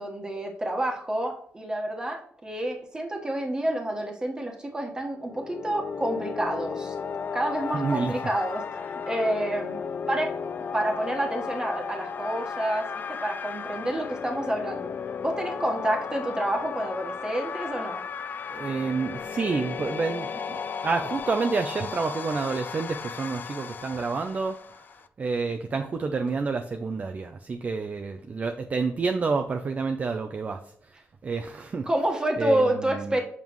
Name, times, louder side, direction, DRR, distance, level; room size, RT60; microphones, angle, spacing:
voice 1, 0.0-6.9 7.3-9.8 10.1-10.3 10.7-14.9 15.2-18.0 31.9-33.2, right 1 dB, 20° right, 2 dB, 1.3 m, -28 dB
sound 1, 5.2-25.1, left 6 dB, 45° left, 0.4 m, -35 dB
voice 2, 7.7-8.2 18.5-31.9 32.4-33.2, right 4 dB, 35° right, 5 dB, 0.5 m, -29 dB
7.3 x 5.3 x 3.1 m, 0.63 s
cardioid pair, 110°, 4 cm